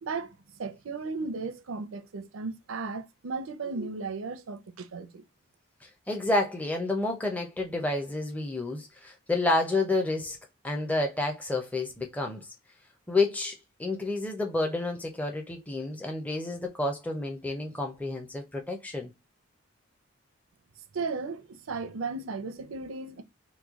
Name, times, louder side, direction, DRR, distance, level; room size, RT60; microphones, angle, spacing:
voice 1, 0.0-5.2 20.9-23.2, right 4 dB, 80° right, 0.5 m, -35 dB
voice 2, 5.8-10.4 10.6-12.5 13.1-19.1, left 2 dB, 5° left, 0.5 m, -30 dB
3.0 x 2.2 x 3.5 m
head